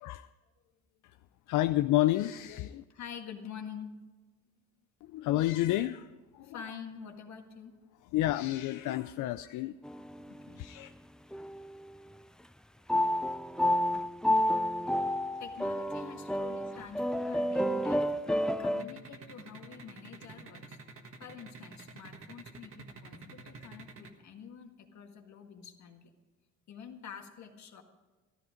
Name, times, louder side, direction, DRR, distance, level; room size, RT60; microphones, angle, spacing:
voice 1, 1.5-2.8 5.1-6.0 8.1-9.7 10.6-10.9, left 15 dB, 85° left, 11 dB, 0.5 m, -29 dB
voice 2, 2.9-4.0 6.4-7.7 10.3-10.7 15.4-20.8 21.2-26.1 26.7-27.8, left 7 dB, 65° left, 4 dB, 1.8 m, -47 dB
sound 1, 9.8-10.6 11.3-11.9 12.9-18.8, equal, ahead, 0.4 m, -30 dB
sound 2, 18.8-24.1, right 4 dB, 45° right, 1.6 m, -48 dB
13.5 x 13.5 x 5.1 m, 1.3 s
cardioid pair, 90°, 30 cm